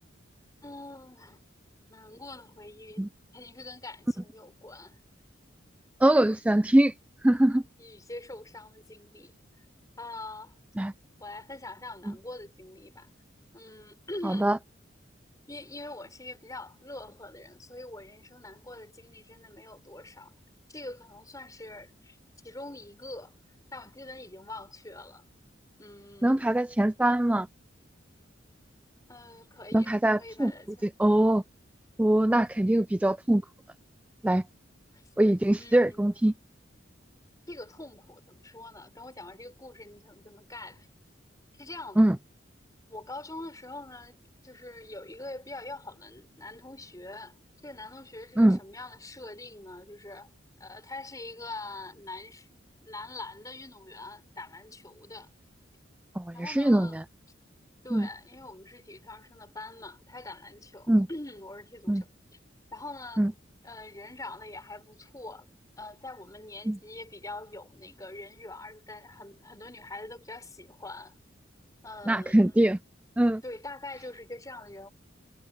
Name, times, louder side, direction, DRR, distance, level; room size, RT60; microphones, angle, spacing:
voice 1, 0.6-1.4 1.9-3.1 3.3-5.0 7.8-9.3 10.0-10.6 11.2-13.1 13.5-14.5 15.5-20.3 20.7-22.2 22.4-23.4 23.7-25.2 25.8-26.6 29.1-29.9 30.2-30.9 34.9-35.0 35.6-36.1 37.5-40.9 41.6-42.0 42.9-47.4 47.6-50.3 50.6-55.3 56.3-57.0 57.8-62.1 62.7-63.3 63.6-65.5 65.8-71.2 71.8-72.6 73.4-74.9, left 2 dB, 20° left, 6.0 m, -44 dB
voice 2, 6.0-6.9 7.2-7.6 10.8-10.9 12.1-12.2 14.2-14.6 26.2-27.5 29.7-30.5 30.8-31.4 32.0-33.4 34.2-34.4 35.2-36.3 42.0-42.2 48.4-48.6 56.2-57.0 57.9-58.1 60.9-61.1 61.9-62.0 63.2-63.3 66.7-66.8 72.1-72.8 73.2-73.4, right 1 dB, 5° right, 0.3 m, -23 dB
head